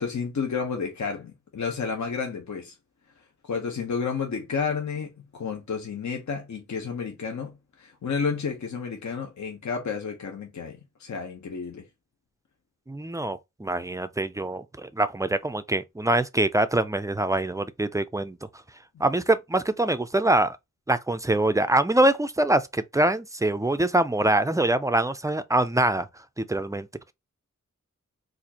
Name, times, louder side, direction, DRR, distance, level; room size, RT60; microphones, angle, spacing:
voice 1, 0.0-2.7 3.4-11.8, left 5 dB, 65° left, 0.8 m, -31 dB
voice 2, 12.9-18.4 19.0-20.6 20.9-26.1 26.4-26.9, right 1 dB, 10° right, 0.3 m, -24 dB
4.1 x 2.5 x 2.8 m
wide cardioid pair, 75°, 31 cm